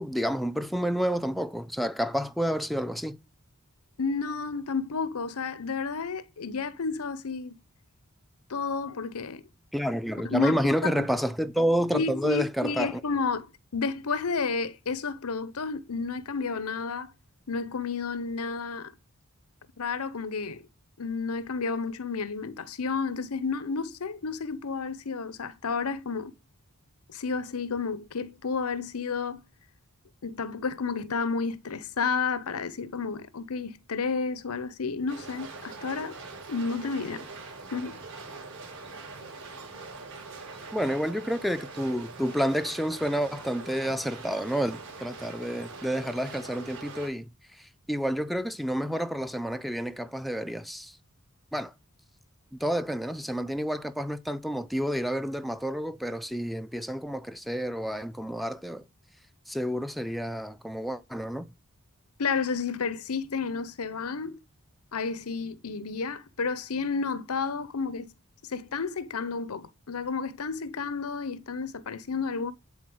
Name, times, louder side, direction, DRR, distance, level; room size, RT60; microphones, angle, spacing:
voice 1, 0.0-3.2 9.7-13.0 40.7-47.3 47.9-50.9 51.5-51.7 52.6-58.8 59.5-61.5, equal, ahead, 0.6 m, -29 dB
voice 2, 4.0-7.6 8.5-9.4 10.2-10.6 10.8-11.1 11.9-17.1 17.5-18.9 19.8-20.7 21.0-26.3 27.1-29.4 30.2-36.2 36.5-37.3 37.7-38.0 62.2-64.4 64.9-68.1 68.4-72.5, left 4 dB, 80° left, 0.8 m, -31 dB
sound 1, 35.1-47.1, right 3 dB, 55° right, 6.3 m, -43 dB
11.5 x 4.2 x 7.8 m
head